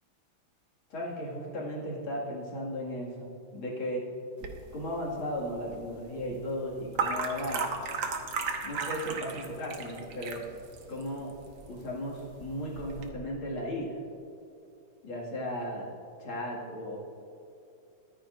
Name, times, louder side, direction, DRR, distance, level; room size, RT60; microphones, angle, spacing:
voice 1, 0.9-4.0 4.7-7.7 8.6-10.4 10.9-11.3 11.7-14.0 15.0-15.9 16.2-17.0, equal, 75° left, -4 dB, 3.1 m, -35 dB
sound 1, 4.4-13.1, right 5 dB, 70° right, 1.8 m, -37 dB
22.5 x 10.0 x 2.6 m, 2.8 s
omnidirectional pair, 2.3 m